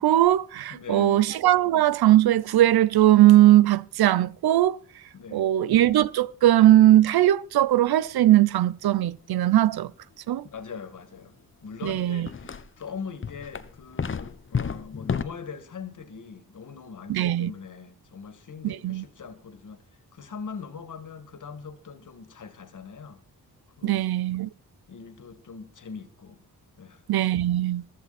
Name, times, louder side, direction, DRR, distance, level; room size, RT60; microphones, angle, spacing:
voice 1, 0.0-4.8 5.3-9.9 10.3-10.4 11.8-12.3 17.1-17.5 18.6-19.0 23.8-24.5 27.1-27.8, right 13 dB, 80° right, 0.7 m, -19 dB
voice 2, 0.7-1.2 5.1-5.5 10.4-11.3 11.6-19.8 20.1-23.2 23.8-24.1 24.9-26.4 26.8-27.3, left 5 dB, 55° left, 2.2 m, -41 dB
sound 1, 11.8-11.9 12.2-12.8 13.2-15.2, left 6 dB, 35° left, 0.9 m, -31 dB
15.0 x 14.0 x 4.3 m
cardioid pair, 110°, 37 cm